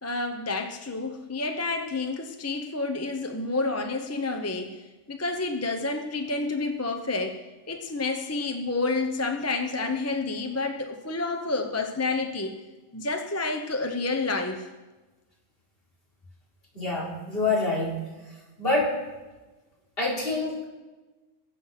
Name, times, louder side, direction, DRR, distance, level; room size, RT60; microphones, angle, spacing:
voice 1, 0.0-4.8 5.1-12.6 12.9-14.7, left 3 dB, 15° left, 5 dB, 0.6 m, -29 dB
voice 2, 16.7-17.9 18.6-18.9 20.0-20.6, left 2 dB, 45° left, -5 dB, 4.1 m, -26 dB
21.0 x 7.6 x 5.8 m, 1.2 s
omnidirectional pair, 1.4 m